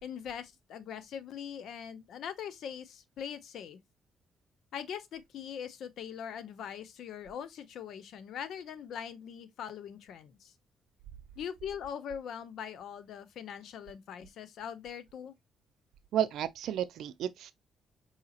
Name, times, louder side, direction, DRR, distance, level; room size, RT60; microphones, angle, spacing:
voice 1, 0.0-3.8 4.7-10.5 11.4-15.4, left 8 dB, 75° left, 0.6 m, -42 dB
voice 2, 16.1-17.5, right 10 dB, 80° right, 0.4 m, -32 dB
4.8 x 2.8 x 2.8 m
cardioid pair, 90°, 0 cm